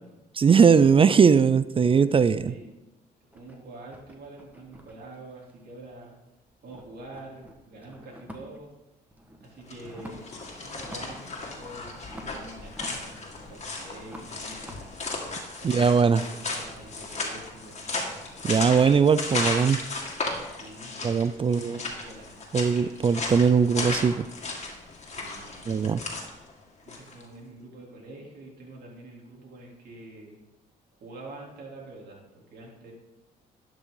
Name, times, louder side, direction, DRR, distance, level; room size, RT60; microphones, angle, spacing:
voice 1, 0.4-2.5 15.6-16.2 18.4-19.8 21.0-21.8 22.5-24.2 25.7-26.0, right 6 dB, 30° right, 15 dB, 0.4 m, -20 dB
sound 1, 3.3-6.2 6.5-8.7 9.1-10.4 10.7-11.3 11.6-13.6 14.0-19.8, equal, 10° right, 1.7 m, -49 dB
voice 2, 3.3-6.2 6.6-8.7 9.4-14.9 15.6-18.0 20.5-21.0 21.4-22.3 25.1-25.7 26.8-30.4 31.0-32.9, right 2 dB, 65° right, -3 dB, 3.4 m, -46 dB
sound 2, 9.6-27.2, left 3 dB, 40° left, 2.3 m, -35 dB
11.5 x 6.2 x 3.9 m, 1.0 s
supercardioid pair, 75°, 18 cm